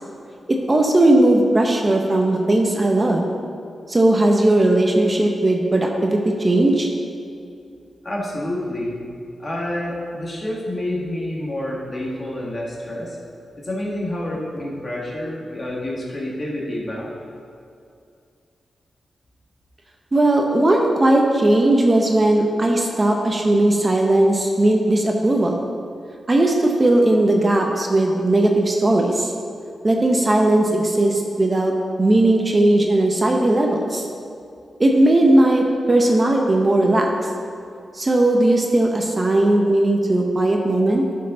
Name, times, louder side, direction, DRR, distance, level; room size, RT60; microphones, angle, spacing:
voice 1, 0.5-3.3 3.9-6.9 20.1-25.6 26.3-29.3 29.8-34.0 34.8-37.1 37.9-41.0, right 1 dB, 30° right, 1 dB, 0.8 m, -17 dB
voice 2, 8.0-9.0 9.4-13.2 13.6-17.1, left 1 dB, 35° left, -3 dB, 1.9 m, -28 dB
11.0 x 5.6 x 3.9 m, 2.5 s
cardioid pair, 90°, 0 cm